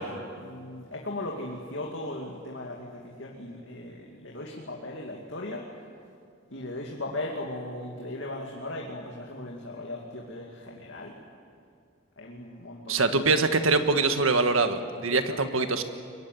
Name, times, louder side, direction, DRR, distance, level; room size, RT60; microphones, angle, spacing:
voice 1, 0.0-5.7 6.5-11.2 12.2-13.4 15.0-15.7, left 1 dB, 65° left, -1 dB, 2.4 m, -38 dB
voice 2, 12.9-15.8, right 3 dB, 85° right, 8 dB, 1.6 m, -24 dB
23.0 x 22.0 x 9.3 m, 2.3 s
head